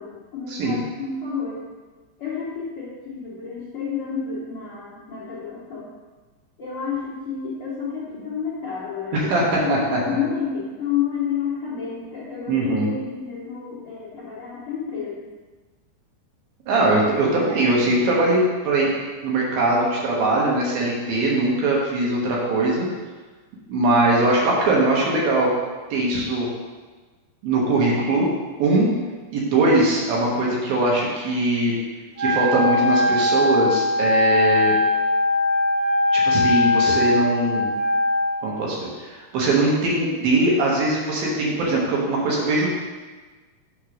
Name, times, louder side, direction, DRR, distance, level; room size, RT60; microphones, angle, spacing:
voice 1, 0.0-1.7 2.2-5.9 6.6-15.3, left 7 dB, 85° left, -9 dB, 1.2 m, -30 dB
voice 2, 9.1-10.0 12.5-12.9 16.7-18.9 19.2-22.9 23.7-25.5 25.9-26.5 27.4-28.3 28.6-28.9 29.3-31.7 32.2-34.7 36.1-37.7 38.4-42.7, right 2 dB, 70° right, -3 dB, 2.7 m, -21 dB
Wind instrument woodwind instrument, 32.2-38.3, left 2 dB, 85° right, 3.6 m, -20 dB
6.6 x 4.4 x 6.0 m, 1.3 s
omnidirectional pair, 5.0 m